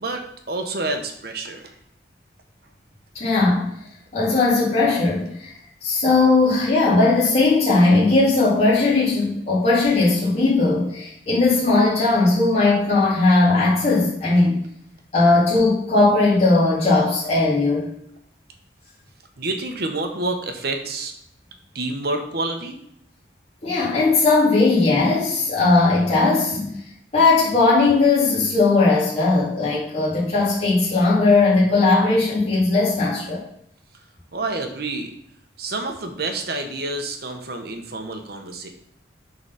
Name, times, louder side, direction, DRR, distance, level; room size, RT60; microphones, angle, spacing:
voice 1, 0.0-1.7 19.4-21.1 21.7-22.8 34.3-35.1 35.6-38.7, right 2 dB, 55° right, 5 dB, 1.0 m, -28 dB
voice 2, 3.1-3.7 4.1-5.5 5.8-14.6 15.1-17.9 23.6-26.8 27.1-33.4, left 3 dB, 35° left, -8 dB, 2.3 m, -18 dB
8.3 x 4.1 x 5.7 m, 0.69 s
head